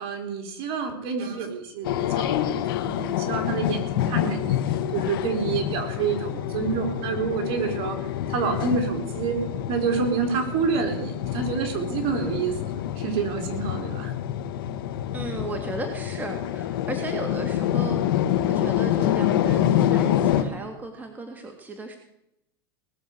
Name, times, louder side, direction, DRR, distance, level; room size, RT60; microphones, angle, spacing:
voice 1, 0.0-4.6 4.9-7.9 8.3-9.4 9.7-14.1, right 5 dB, 50° right, 5 dB, 4.0 m, -28 dB
sound 1, 1.8-20.4, left 11 dB, 70° left, 1.5 m, -27 dB
voice 2, 15.1-22.0, right 2 dB, 15° right, 4 dB, 2.1 m, -35 dB
19.5 x 7.2 x 8.2 m, 0.80 s
supercardioid pair, 120°, 12 cm